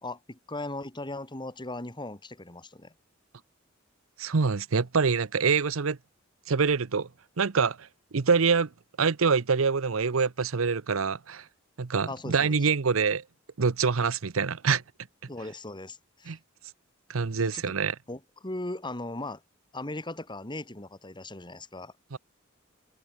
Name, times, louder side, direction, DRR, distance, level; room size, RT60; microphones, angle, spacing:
voice 1, 0.0-2.9 12.1-12.7 15.3-16.3 17.3-17.8 18.1-19.4 19.7-21.9, left 2 dB, 25° left, 2.5 m, -38 dB
voice 2, 4.2-6.0 6.5-7.1 7.4-8.7 9.0-11.4 11.8-13.2 13.6-14.8 16.3-16.4 17.1-17.9 22.1-22.2, right 5 dB, 85° right, 0.8 m, -25 dB
head